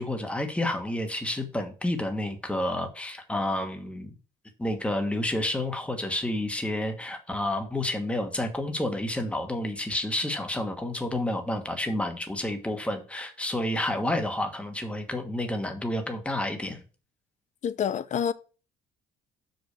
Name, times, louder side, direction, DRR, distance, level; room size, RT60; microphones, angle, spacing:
voice 1, 0.0-4.2 4.6-16.8, left 1 dB, 5° left, 1.4 m, -30 dB
voice 2, 17.6-18.3, left 8 dB, 45° left, 0.6 m, -27 dB
6.0 x 5.4 x 6.5 m
cardioid pair, 110°, 17 cm